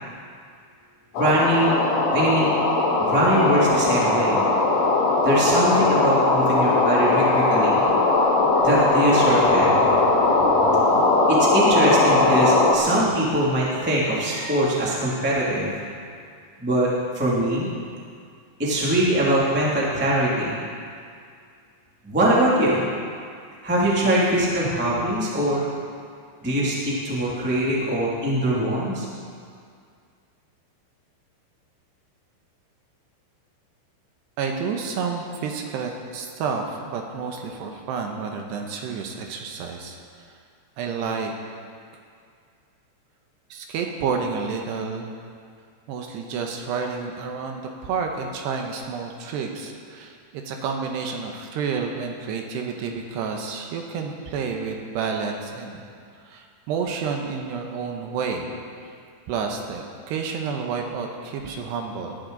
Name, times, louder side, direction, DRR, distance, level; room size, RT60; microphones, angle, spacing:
sound 1, 1.1-12.7, left 2 dB, 65° left, 1.6 m, -19 dB
voice 1, 1.2-1.7 2.1-2.5 3.0-4.4 5.2-7.8 8.6-9.8 11.3-15.7 16.6-16.9 17.1-17.7 18.6-20.6 22.0-22.8 23.6-25.6 26.4-29.0, right 1 dB, 10° right, -6 dB, 0.7 m, -22 dB
voice 2, 34.4-40.0 40.8-41.3 43.5-45.1 45.9-55.8 56.3-58.6 59.3-62.2, right 5 dB, 75° right, 2 dB, 2.9 m, -30 dB
19.0 x 11.0 x 4.0 m, 2.2 s
omnidirectional pair, 5.3 m